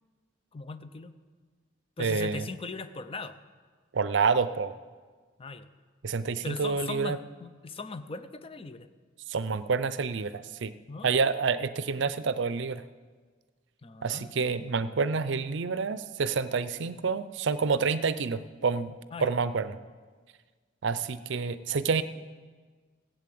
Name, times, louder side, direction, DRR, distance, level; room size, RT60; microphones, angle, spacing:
voice 1, 0.5-1.1 2.0-3.4 5.4-5.7 6.4-8.9 10.9-11.4 13.8-14.3 19.1-19.3, left 3 dB, 30° left, 10 dB, 0.6 m, -39 dB
voice 2, 2.0-2.4 3.9-4.8 6.0-7.2 9.3-10.7 11.0-12.8 14.0-18.9 19.2-19.8 20.8-22.0, right 5 dB, 65° right, 14 dB, 0.5 m, -28 dB
15.5 x 8.2 x 7.7 m, 1.5 s
head